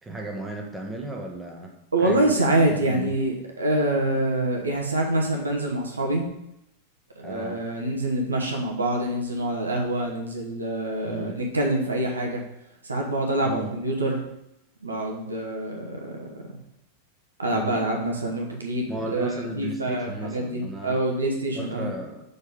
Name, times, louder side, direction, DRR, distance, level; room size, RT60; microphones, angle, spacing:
voice 1, 0.0-1.7 2.0-3.1 7.2-7.6 11.0-11.4 13.4-13.7 17.5-17.8 18.9-21.0 21.5-22.2, right 2 dB, 10° right, 0 dB, 1.2 m, -35 dB
voice 2, 1.9-6.3 7.2-12.4 12.8-14.2 14.8-16.4 17.4-21.9, right 1 dB, 75° right, 0 dB, 1.1 m, -26 dB
6.6 x 4.4 x 3.7 m, 0.85 s
figure-of-eight pair, 90°, 0 cm